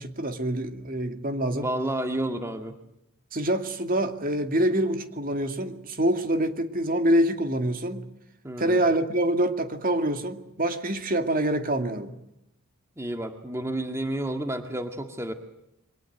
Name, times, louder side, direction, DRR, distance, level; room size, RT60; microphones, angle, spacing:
voice 1, 0.0-1.7 3.3-8.1 8.6-12.2, right 1 dB, 40° right, 7 dB, 2.4 m, -26 dB
voice 2, 1.6-2.8 8.4-8.8 13.0-15.3, right 1 dB, 15° right, 6 dB, 1.8 m, -30 dB
28.5 x 24.5 x 8.0 m, 0.83 s
head